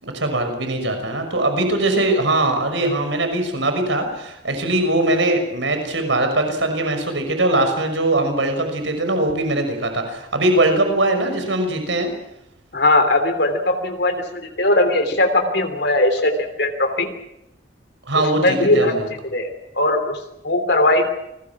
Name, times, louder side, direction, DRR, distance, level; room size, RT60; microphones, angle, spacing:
voice 1, 0.0-12.1 18.1-19.1, right 2 dB, 90° right, 6 dB, 6.0 m, -21 dB
voice 2, 12.7-14.2 14.6-16.3 16.6-17.1 18.4-19.0 19.3-19.5 19.7-20.2 20.4-21.0, left 2 dB, 65° left, 6 dB, 3.3 m, -18 dB
29.0 x 22.0 x 6.1 m, 0.84 s
head